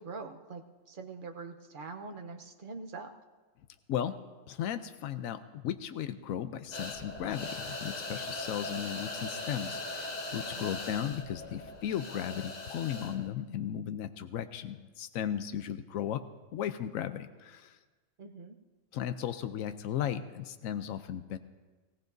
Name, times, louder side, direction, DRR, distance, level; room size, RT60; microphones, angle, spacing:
voice 1, 0.0-3.1 10.4-10.7 18.2-18.6, right 4 dB, 45° right, 4 dB, 0.9 m, -44 dB
voice 2, 4.5-16.2 16.5-17.8 18.9-21.4, left 10 dB, 85° left, 10 dB, 1.0 m, -36 dB
sound 1, 6.7-13.3, left 2 dB, 35° left, 0.9 m, -40 dB
18.5 x 17.0 x 2.7 m, 1.3 s
omnidirectional pair, 1.4 m